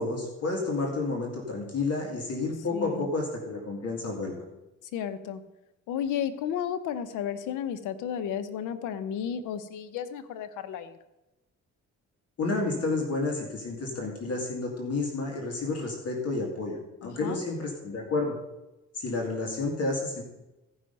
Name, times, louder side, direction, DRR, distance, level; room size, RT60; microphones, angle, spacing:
voice 1, 0.0-4.3 12.4-18.3 18.9-20.2, left 3 dB, 55° left, 0 dB, 2.2 m, -30 dB
voice 2, 2.7-3.1 4.9-5.4 5.9-11.0 17.0-17.5, left 9 dB, 90° left, 12 dB, 0.8 m, -33 dB
14.5 x 5.6 x 5.3 m, 0.99 s
cardioid pair, 90°, 30 cm